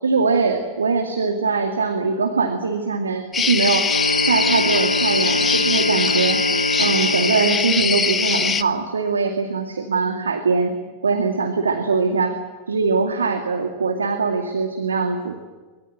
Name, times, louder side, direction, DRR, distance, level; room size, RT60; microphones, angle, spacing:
voice 1, 0.0-3.9 4.2-6.4 6.8-10.7 11.0-12.3 12.7-15.4, right 4 dB, 75° right, 4 dB, 2.3 m, -22 dB
sound 1, 3.3-8.6, left 6 dB, 20° left, 1.1 m, -22 dB
sound 2, 3.8-7.8, equal, 90° left, 0.7 m, -25 dB
24.5 x 22.5 x 7.9 m, 1.3 s
figure-of-eight pair, 90°, 0 cm